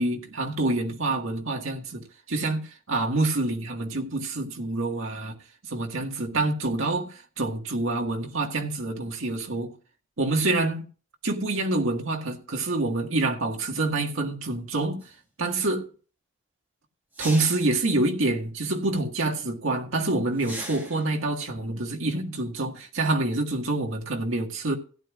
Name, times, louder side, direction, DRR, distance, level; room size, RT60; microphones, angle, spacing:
voice 1, 0.0-5.3 5.7-9.7 10.2-10.8 11.2-15.0 15.4-15.9 17.2-24.8, right 2 dB, 80° right, 1.8 m, -27 dB
sound 1, 15.0-15.1 17.1-17.8 20.4-21.1, right 1 dB, 10° right, 1.9 m, -38 dB
16.5 x 10.0 x 2.5 m
head